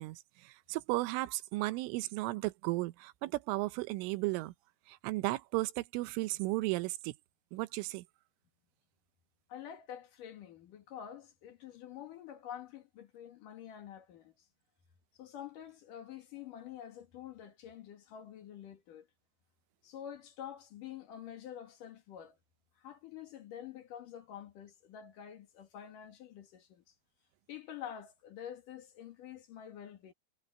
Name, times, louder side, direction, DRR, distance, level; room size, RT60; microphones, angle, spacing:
voice 1, 0.0-4.5 4.9-7.1 7.5-8.0, right 20 dB, 85° right, 3.3 m, -35 dB
voice 2, 9.5-14.5 15.1-19.1 19.8-22.4 22.8-26.8 27.5-30.1, left 10 dB, 55° left, 2.7 m, -47 dB
omnidirectional pair, 5.6 m